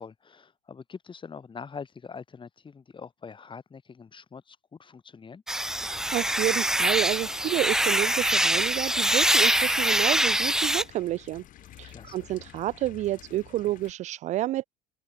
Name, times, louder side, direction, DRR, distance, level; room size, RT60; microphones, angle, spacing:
voice 1, 0.0-5.4 11.9-12.3, left 5 dB, 25° left, 7.0 m, -44 dB
sound 1, 5.5-10.8, right 1 dB, 5° right, 1.0 m, -24 dB
voice 2, 5.8-11.4 11.8-14.6, right 15 dB, 40° right, 0.5 m, -30 dB
sound 2, 5.9-13.9, left 13 dB, 45° left, 2.7 m, -50 dB
open air
figure-of-eight pair, 65°, 19 cm